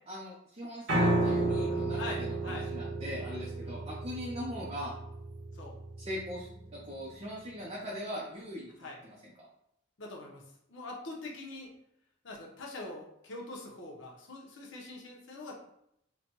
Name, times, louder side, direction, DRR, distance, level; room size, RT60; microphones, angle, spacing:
voice 1, 0.1-4.9 6.0-9.3, equal, 30° right, -4 dB, 0.5 m, -41 dB
Piano, 0.9-7.1, right 2 dB, 90° right, 1.1 m, -32 dB
voice 2, 1.9-2.7 3.2-4.3 5.5-5.8 8.8-9.0 10.0-10.4 10.7-11.7 12.2-15.6, left 2 dB, 75° left, -2 dB, 0.9 m, -44 dB
4.2 x 2.2 x 2.9 m, 0.76 s
head